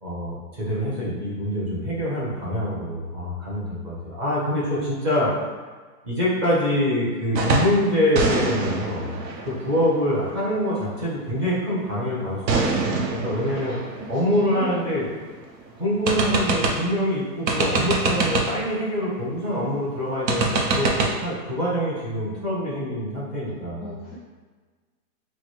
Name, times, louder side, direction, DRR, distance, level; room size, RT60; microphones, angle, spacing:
voice 1, 0.0-5.3 6.0-9.2 9.4-13.7 14.1-15.1 15.8-23.9, left 1 dB, 15° right, -7 dB, 0.8 m, -25 dB
sound 1, 7.3-7.8 8.1-10.8 12.5-15.2 15.5-15.6 16.1-17.0 17.5-18.7 20.3-21.1, right 3 dB, 80° right, 0.9 m, -25 dB
voice 2, 13.6-14.1 14.4-14.9 23.8-24.2, equal, ahead, -15 dB, 0.3 m, -36 dB
6.2 x 2.2 x 3.1 m, 1.4 s
hypercardioid pair, 160°, 49 cm